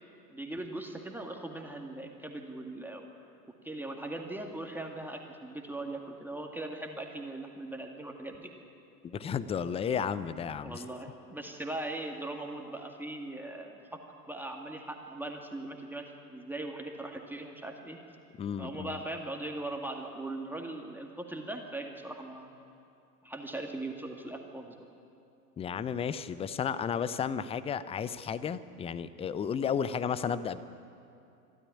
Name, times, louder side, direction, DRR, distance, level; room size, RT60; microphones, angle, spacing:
voice 1, 0.3-3.1 3.6-8.5 10.6-14.0 14.3-18.0 18.6-22.5 23.2-24.8, right 2 dB, 5° right, 2 dB, 1.9 m, -40 dB
voice 2, 9.0-10.8 18.4-19.0 25.6-30.6, left 7 dB, 10° left, 16 dB, 0.6 m, -33 dB
25.5 x 13.0 x 9.9 m, 2.6 s
figure-of-eight pair, 90°, 48 cm